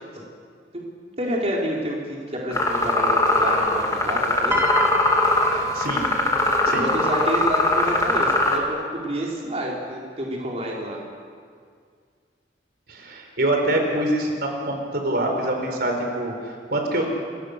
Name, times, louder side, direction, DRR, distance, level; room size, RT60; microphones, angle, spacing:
voice 1, 1.2-4.6 6.6-11.0, right 1 dB, 35° right, -3 dB, 4.3 m, -29 dB
sound 1, 2.5-8.6, left 2 dB, 20° left, 2.9 m, -21 dB
Piano, 4.5-6.9 7.9-8.2, right 1 dB, 15° right, 2.8 m, -30 dB
voice 2, 5.5-6.0 6.7-6.8 12.9-17.0, right 1 dB, 60° right, 2 dB, 4.4 m, -25 dB
29.5 x 24.5 x 6.7 m, 2.1 s
head